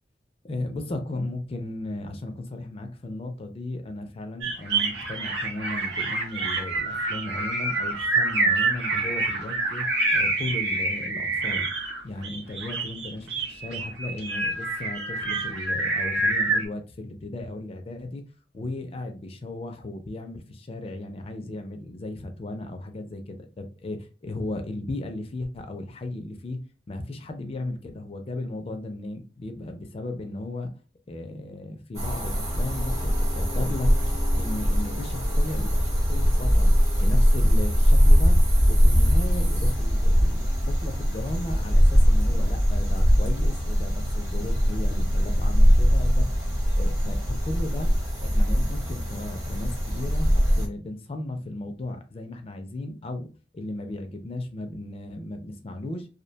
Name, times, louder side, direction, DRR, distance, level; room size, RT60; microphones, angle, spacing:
voice 1, 0.4-9.9 10.1-11.7 12.0-18.2 18.5-26.6 26.9-30.7 31.1-33.9 34.4-38.3 38.7-46.3 46.8-47.9 48.2-53.3 53.5-56.1, left 2 dB, 35° left, 0.4 m, -35 dB
sound 1, 4.4-16.7, right 3 dB, 90° right, 0.7 m, -27 dB
sound 2, 31.9-50.7, equal, 20° right, 0.7 m, -21 dB
2.5 x 2.1 x 2.6 m
head